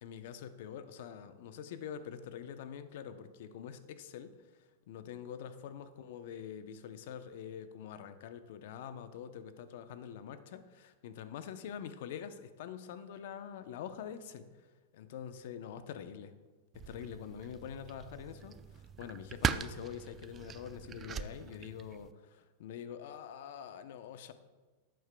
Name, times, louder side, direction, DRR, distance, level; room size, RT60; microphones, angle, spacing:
voice 1, 0.0-14.5 14.9-16.3 16.9-24.3, left 8 dB, 65° left, 10 dB, 0.7 m, -45 dB
sound 1, 16.7-22.1, right 7 dB, 25° right, 0.3 m, -40 dB
11.0 x 7.9 x 2.2 m, 1.3 s
hypercardioid pair, 115°, 0 cm